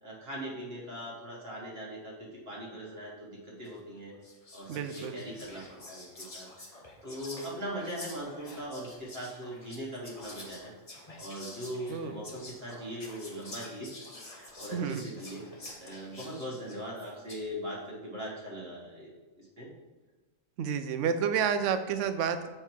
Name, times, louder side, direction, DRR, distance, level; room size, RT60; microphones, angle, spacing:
voice 1, 0.0-4.2 4.5-13.9 14.2-19.7, equal, 50° right, -4 dB, 1.7 m, -41 dB
Whispering, 3.7-3.9 4.2-17.5, left 2 dB, 30° left, 1.1 m, -48 dB
voice 2, 4.7-5.2 11.9-12.2 14.7-15.0 20.6-22.5, right 7 dB, 70° right, 9 dB, 0.9 m, -30 dB
7.7 x 4.5 x 4.5 m, 1.3 s
omnidirectional pair, 1.4 m